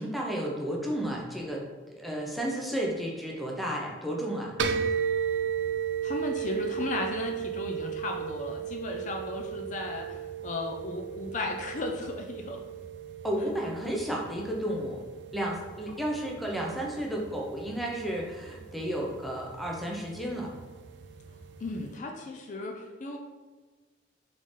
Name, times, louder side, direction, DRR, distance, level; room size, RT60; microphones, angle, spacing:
voice 1, 0.0-1.6 2.0-4.5 13.2-15.0 15.3-20.5, right 1 dB, ahead, -2 dB, 0.6 m, -32 dB
sound 1, 4.6-21.9, right 8 dB, 80° right, 0.4 m, -36 dB
voice 2, 6.0-12.6 15.9-16.0 21.6-23.2, left 2 dB, 45° left, 3 dB, 0.4 m, -35 dB
3.9 x 3.7 x 3.2 m, 1.3 s
head